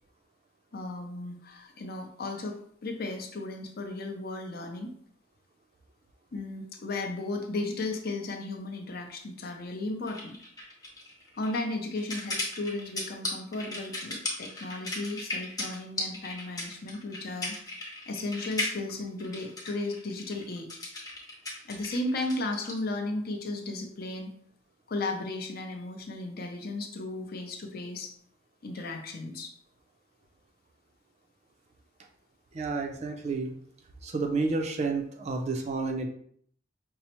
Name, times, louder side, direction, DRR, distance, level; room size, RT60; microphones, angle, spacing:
voice 1, 0.7-4.9 6.3-10.4 11.4-17.6 18.1-20.8 21.7-24.3 24.9-28.1 28.6-29.5, left 2 dB, 50° left, 3 dB, 0.5 m, -35 dB
sound 1, 10.1-22.8, left 2 dB, 20° left, 0.8 m, -36 dB
voice 2, 32.5-33.5 34.0-36.1, right 3 dB, 35° right, 4 dB, 0.4 m, -30 dB
5.4 x 2.0 x 2.9 m, 0.63 s
head